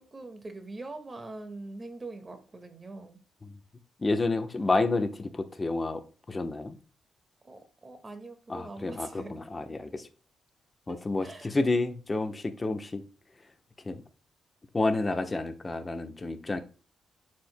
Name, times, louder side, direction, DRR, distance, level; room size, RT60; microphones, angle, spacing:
voice 1, 0.0-3.2 7.4-9.4 10.9-11.6, right 2 dB, 30° right, 1.8 m, -43 dB
voice 2, 4.0-6.0 6.3-6.8 8.5-10.1 10.9-13.0 13.8-14.0 14.7-16.6, left 2 dB, 30° left, 1.0 m, -29 dB
9.1 x 7.6 x 2.2 m
cardioid pair, 80°, 0 cm